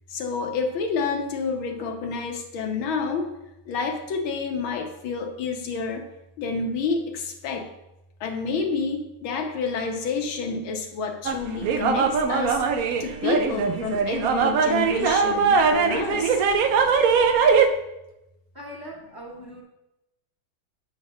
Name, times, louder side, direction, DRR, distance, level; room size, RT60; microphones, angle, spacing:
voice 1, 0.1-3.3 3.7-6.1 6.4-7.7 8.2-12.6 13.0-16.4, left 4 dB, 75° left, 3 dB, 1.8 m, -29 dB
sound 1, 11.3-17.7, right 5 dB, 80° right, 0.7 m, -21 dB
voice 2, 18.5-19.6, equal, 10° left, -3 dB, 1.5 m, -40 dB
9.1 x 3.7 x 6.5 m, 0.90 s
omnidirectional pair, 2.3 m